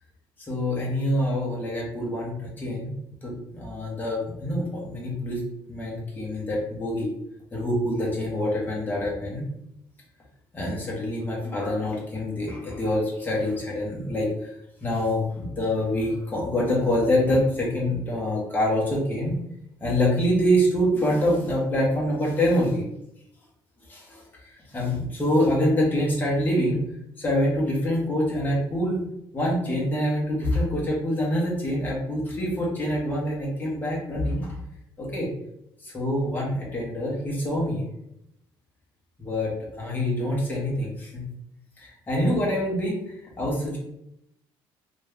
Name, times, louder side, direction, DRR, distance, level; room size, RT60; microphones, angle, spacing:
voice 1, 0.5-3.0 3.2-5.4 5.7-7.1 7.5-9.4 10.5-14.5 14.8-19.3 19.8-22.8 23.9-24.2 24.7-26.8 27.2-29.0 29.3-34.6 35.0-35.3 35.8-37.8 39.2-39.5 39.8-41.2 41.8-43.8, left 1 dB, 20° left, -5 dB, 1.4 m, -25 dB
3.1 x 2.6 x 3.5 m, 0.79 s
cardioid pair, 130°, 10 cm